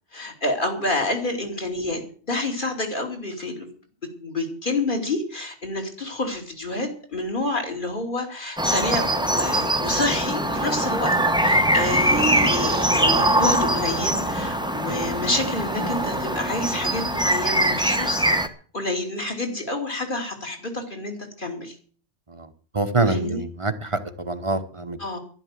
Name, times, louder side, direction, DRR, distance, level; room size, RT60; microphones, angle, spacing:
voice 1, 0.1-2.0 2.3-3.7 4.2-11.1 11.4-18.2 18.7-21.8 23.1-23.4 25.0-25.2, left 2 dB, 45° left, 3 dB, 3.0 m, -28 dB
sound 1, 8.6-18.5, right 1 dB, 5° right, 1.0 m, -22 dB
voice 2, 22.7-25.0, right 2 dB, 30° right, 9 dB, 1.1 m, -25 dB
11.5 x 11.5 x 7.5 m, 0.43 s
omnidirectional pair, 1.2 m